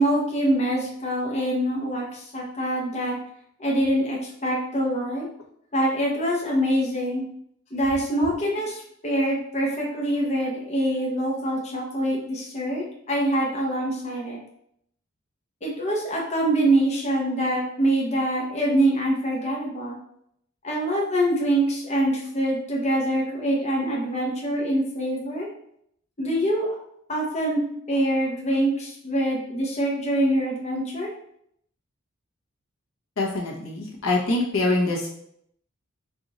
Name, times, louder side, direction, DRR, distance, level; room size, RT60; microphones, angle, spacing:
voice 1, 0.0-3.2 3.6-5.2 5.7-7.2 7.7-14.4 15.6-20.0 20.6-25.5 26.2-26.7 27.1-27.6 27.9-31.1, right 1 dB, 35° left, -3 dB, 0.9 m, -24 dB
voice 2, 33.2-35.1, left 2 dB, 85° left, -3 dB, 1.2 m, -24 dB
4.7 x 2.6 x 4.0 m, 0.70 s
head